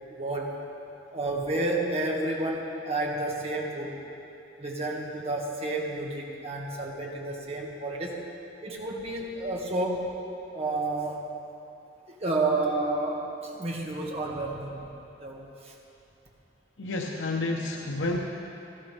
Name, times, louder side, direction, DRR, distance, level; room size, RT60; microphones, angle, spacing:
voice 1, 0.1-0.6 1.1-4.1 4.6-8.2 8.6-10.2 10.5-11.3 12.1-14.8 15.2-15.7, right 2 dB, 35° right, -2 dB, 1.7 m, -30 dB
voice 2, 16.8-18.2, left 2 dB, 90° left, 0 dB, 0.9 m, -30 dB
18.5 x 14.5 x 3.4 m, 2.8 s
head